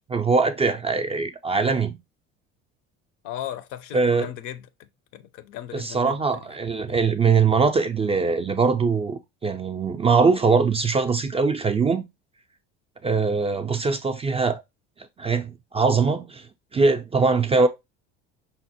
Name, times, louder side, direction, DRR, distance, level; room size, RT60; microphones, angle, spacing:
voice 1, 0.0-2.0 3.9-4.3 5.7-12.0 13.0-14.6 15.2-16.4 16.7-17.7, right 4 dB, 20° right, 0.3 m, -22 dB
voice 2, 3.2-4.7 5.1-6.4 6.9-7.0, left 11 dB, 60° left, 0.5 m, -37 dB
5.5 x 2.1 x 2.8 m
hypercardioid pair, 70°, 33 cm